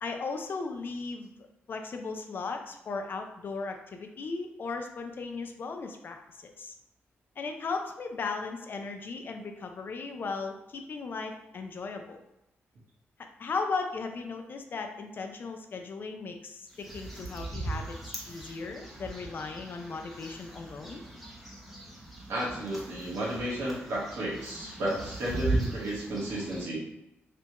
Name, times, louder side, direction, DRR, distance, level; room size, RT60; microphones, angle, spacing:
voice 1, 0.0-6.7 7.4-12.2 13.4-18.0 18.3-21.0, left 4 dB, 50° left, 5 dB, 0.4 m, -37 dB
sound 1, 16.7-26.6, right 2 dB, ahead, 0.7 m, -38 dB
voice 2, 22.3-26.8, right 1 dB, 80° right, -5 dB, 1.3 m, -33 dB
3.3 x 2.2 x 2.9 m, 0.87 s
cardioid pair, 110°, 5 cm